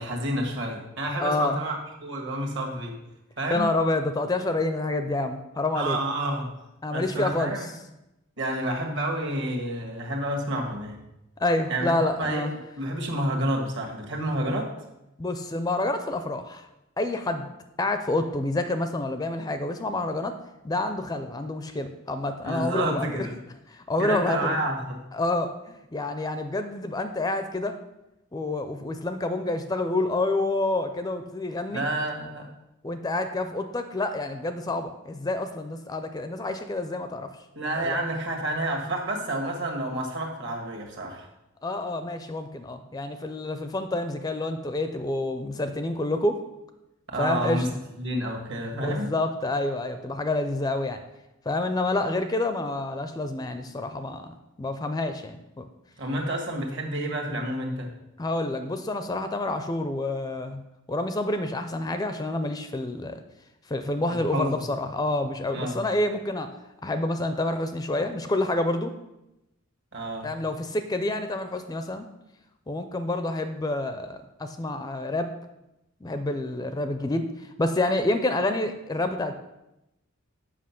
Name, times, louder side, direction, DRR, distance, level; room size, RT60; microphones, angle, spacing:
voice 1, 0.0-2.9 3.4-3.7 5.7-6.5 6.9-7.7 8.4-11.0 11.7-12.4 12.8-14.7 22.4-23.3 24.0-25.0 31.7-32.5 37.5-41.3 47.1-47.7 48.0-49.1 56.0-57.9 64.1-64.5 65.5-65.8 69.9-70.3, right 1 dB, 55° right, 2 dB, 1.6 m, -29 dB
voice 2, 1.2-1.6 3.5-6.0 6.8-7.5 11.4-12.5 15.2-16.7 17.0-17.5 17.8-20.4 20.6-23.3 23.7-24.6 25.1-27.7 28.3-31.8 32.8-37.3 37.8-38.0 41.6-46.4 47.2-47.7 48.7-51.0 51.5-55.6 58.2-60.6 60.9-63.2 63.7-66.5 66.8-68.9 70.2-72.1 72.7-75.3 76.0-79.3, left 2 dB, 15° left, 8 dB, 0.4 m, -28 dB
7.5 x 5.7 x 5.8 m, 0.93 s
head